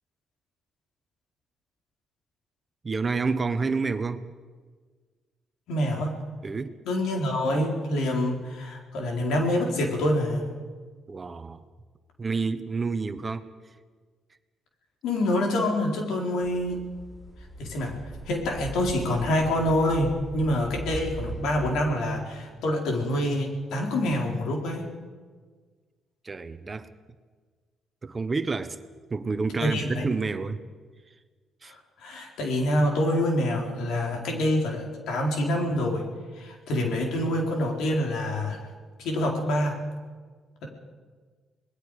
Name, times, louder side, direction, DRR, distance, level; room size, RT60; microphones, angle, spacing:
voice 1, 2.8-4.2 6.4-6.7 11.1-11.6 12.2-13.4 26.2-26.9 28.0-28.8 29.1-30.6 31.6-31.7, right 4 dB, 30° right, 11 dB, 1.2 m, -29 dB
voice 2, 5.7-6.2 6.9-10.4 15.0-16.8 17.6-18.0 18.3-24.8 29.6-30.1 31.6-36.1 36.4-38.7 39.0-39.8, left 1 dB, 80° left, 1 dB, 4.3 m, -26 dB
sound 1, 16.4-21.8, right 1 dB, 10° left, 4.4 m, -40 dB
27.0 x 20.0 x 5.0 m, 1.5 s
cardioid pair, 90°, 0 cm